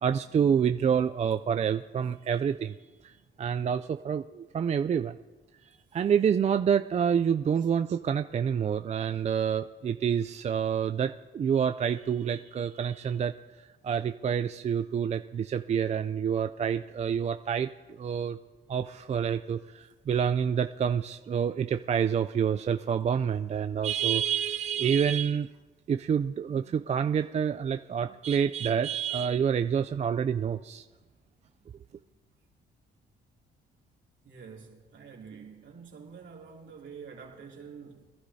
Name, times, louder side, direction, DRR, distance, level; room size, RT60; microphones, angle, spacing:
voice 1, 0.0-2.8 3.0-5.1 5.6-13.3 13.8-18.4 18.7-25.5 25.9-30.8, right 7 dB, 35° right, 0.4 m, -28 dB
voice 2, 34.2-38.0, right 6 dB, 70° right, 2.8 m, -47 dB
22.0 x 11.5 x 2.7 m
cardioid pair, 90°, 20 cm